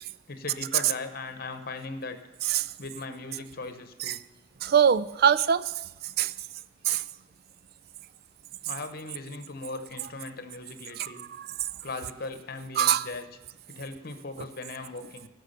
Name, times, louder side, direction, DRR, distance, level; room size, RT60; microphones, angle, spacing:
voice 1, 0.3-2.2 2.8-4.2 8.6-11.3 11.8-13.3 13.7-15.3, left 3 dB, 50° left, 9 dB, 1.0 m, -38 dB
voice 2, 4.6-5.7 6.2-6.3 6.9-7.0 11.0-11.1 11.4-11.5 12.8-13.1, right 8 dB, 50° right, 18 dB, 0.4 m, -23 dB
15.5 x 6.2 x 6.7 m, 1.0 s
head